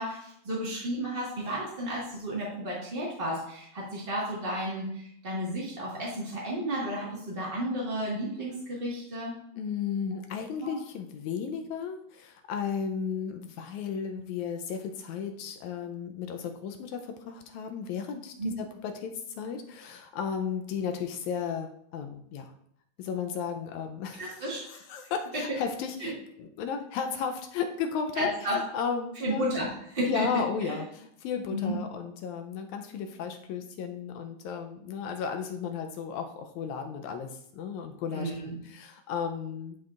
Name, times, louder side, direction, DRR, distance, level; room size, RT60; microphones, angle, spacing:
voice 1, 0.0-9.4 10.6-10.7 18.4-18.5 24.2-24.6 26.0-26.1 28.2-28.6 29.2-29.7 29.9-30.3 30.6-30.8 31.5-31.7 38.1-38.5, equal, 40° right, -5 dB, 0.8 m, -32 dB
voice 2, 9.6-22.5 23.0-29.5 30.0-39.8, left 6 dB, 80° left, 5 dB, 1.9 m, -34 dB
11.5 x 4.6 x 2.4 m, 0.70 s
omnidirectional pair, 3.6 m